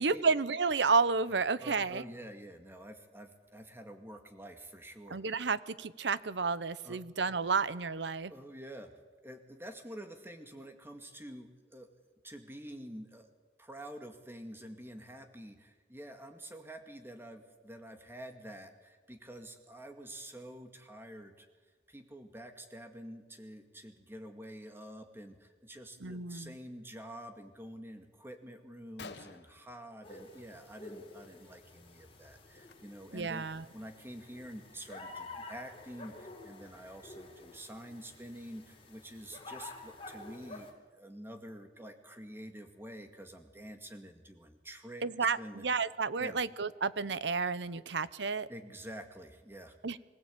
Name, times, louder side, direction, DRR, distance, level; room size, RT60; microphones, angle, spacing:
voice 1, 0.0-2.0 5.1-8.3 26.0-26.5 33.1-33.6 45.0-48.5 49.8-50.0, right 4 dB, 80° right, 16 dB, 0.8 m, -31 dB
voice 2, 1.3-5.4 6.8-7.0 8.3-8.9 9.2-11.9 12.2-13.3 13.6-18.7 19.1-21.5 21.9-25.3 25.6-33.5 33.7-36.1 36.4-40.7 41.0-45.6 46.2-46.4 48.5-49.7, equal, 15° right, 6 dB, 2.1 m, -48 dB
Gunshot gunfire, 28.7-28.8 29.0-30.6 30.9-31.3 31.5-31.8 32.5-32.7 33.3-33.4 33.8-35.4, left 4 dB, 70° left, 1.2 m, -52 dB
sound 1, 30.0-40.7, left 2 dB, 30° left, 3.9 m, -50 dB
24.5 x 17.0 x 8.6 m, 1.3 s
head